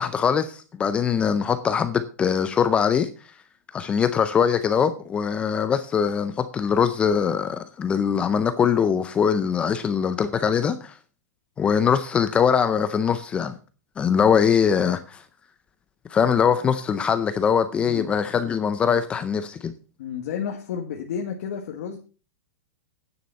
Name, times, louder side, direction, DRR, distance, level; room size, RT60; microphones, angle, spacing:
voice 1, 0.0-3.1 3.7-10.9 11.6-13.5 14.0-15.2 16.1-19.7, left 7 dB, 10° left, 0.5 m, -22 dB
voice 2, 20.0-22.0, left 7 dB, 55° left, 1.5 m, -31 dB
9.5 x 7.0 x 5.5 m
supercardioid pair, 170°, 9 cm